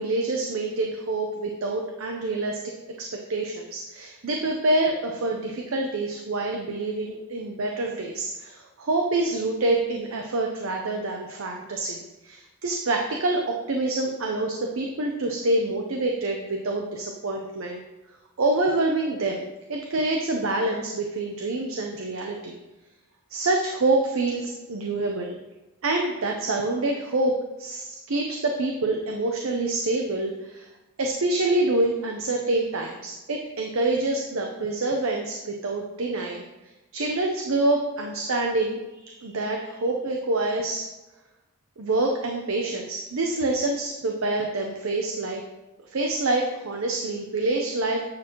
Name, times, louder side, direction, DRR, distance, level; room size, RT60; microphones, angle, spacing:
voice 1, 0.0-2.6 3.0-17.8 18.4-19.4 19.7-22.6 23.3-25.4 25.8-30.7 31.0-36.4 36.9-40.9 41.8-45.4 45.9-48.0, right 2 dB, 70° right, 1 dB, 0.6 m, -26 dB
8.6 x 4.3 x 2.9 m, 1.0 s
head